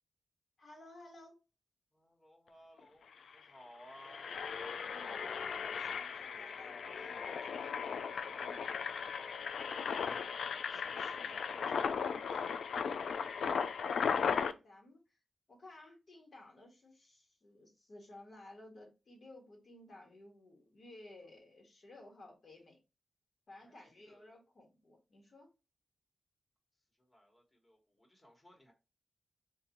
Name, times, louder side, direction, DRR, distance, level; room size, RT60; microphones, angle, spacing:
voice 1, 0.6-1.4 4.8-8.7 14.0-15.0 15.5-22.8 23.5-25.5, left 1 dB, 60° left, 1.4 m, -56 dB
voice 2, 1.9-4.4 9.4-12.6 23.6-23.7 24.1-24.3 27.0-28.7, equal, 25° left, 1.5 m, -59 dB
Engine, 2.8-2.9 3.1-3.3 3.8-14.5, left 6 dB, 90° left, 0.3 m, -37 dB
3.9 x 2.6 x 2.8 m
cardioid pair, 70°, 0 cm